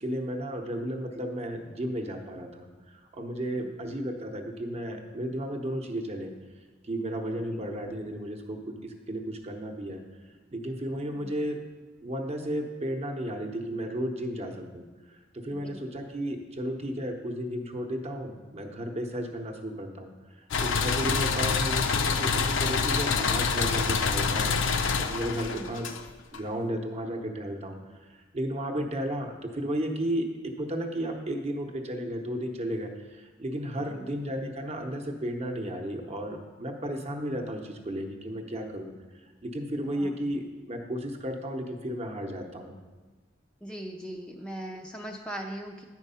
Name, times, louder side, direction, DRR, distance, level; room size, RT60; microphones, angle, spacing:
voice 1, 0.0-6.3 6.8-10.0 10.5-11.6 12.0-14.8 15.3-20.1 20.4-25.9 26.3-28.1 28.3-38.9 39.4-42.8, equal, 35° right, 4 dB, 0.8 m, -33 dB
voice 2, 11.0-11.3 15.5-15.8 25.3-25.7 33.9-34.0 39.9-40.2 43.6-45.8, right 1 dB, 5° left, 1 dB, 0.4 m, -40 dB
sound 1, 20.5-26.4, left 5 dB, 70° left, 0.5 m, -26 dB
9.0 x 4.6 x 5.6 m, 1.3 s
head